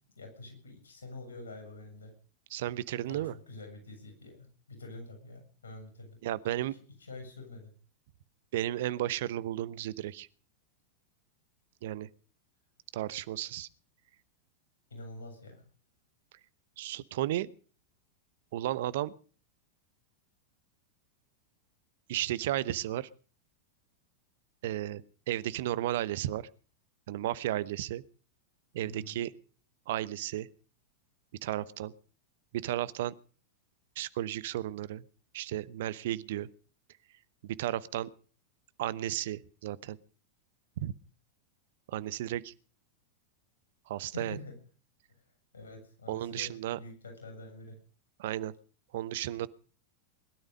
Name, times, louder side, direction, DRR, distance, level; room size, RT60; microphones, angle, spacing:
voice 1, 0.2-2.1 3.1-6.2 7.0-7.7 14.9-15.7 28.8-29.2 44.1-44.5 45.1-45.2 45.5-47.8, left 2 dB, 70° left, 4 dB, 7.3 m, -46 dB
voice 2, 2.5-3.3 6.2-6.7 8.5-10.3 11.8-12.1 12.9-13.7 16.8-17.5 18.5-19.1 22.1-23.1 24.6-26.5 27.1-28.0 28.7-29.3 29.9-30.5 31.4-31.9 32.5-33.2 34.0-35.0 35.3-36.5 37.4-38.1 38.8-40.0 40.8-40.9 41.9-42.5 43.9-44.4 46.1-46.8 48.2-48.5 48.9-49.5, right 13 dB, 55° right, 19 dB, 0.9 m, -33 dB
21.5 x 12.5 x 5.3 m, 0.41 s
figure-of-eight pair, 90°, 0 cm